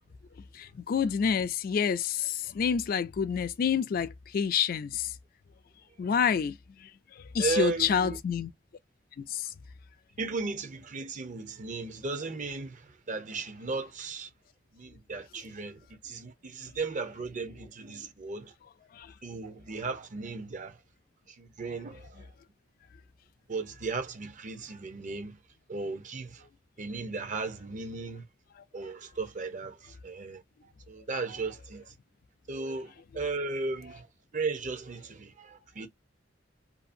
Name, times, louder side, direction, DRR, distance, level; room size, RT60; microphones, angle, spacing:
voice 1, 0.5-5.1 6.0-8.5 9.2-9.5 18.9-19.1 28.6-28.7, left 7 dB, 50° left, 0.3 m, -28 dB
voice 2, 7.4-8.2 10.2-14.3 14.7-15.8 16.0-18.5 19.2-20.8 21.4-22.3 23.5-25.4 25.7-26.5 26.8-28.2 28.7-30.4 30.9-31.8 32.5-34.1 34.3-35.9, right 4 dB, 40° right, 0.6 m, -36 dB
2.7 x 2.6 x 2.5 m
head